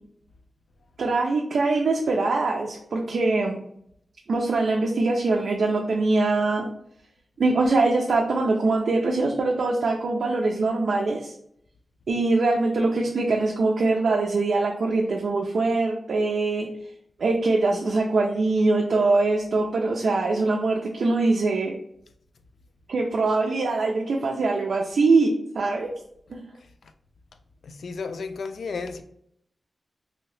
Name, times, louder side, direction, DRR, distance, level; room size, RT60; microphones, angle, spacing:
voice 1, 1.0-3.6 4.3-6.7 7.4-11.3 12.1-16.7 17.2-21.7 22.9-25.9 26.3-26.4, right 3 dB, 80° right, 0.4 m, -23 dB
voice 2, 27.6-29.0, left 4 dB, 90° left, 0.3 m, -33 dB
2.7 x 2.7 x 3.2 m
wide cardioid pair, 110°, 0 cm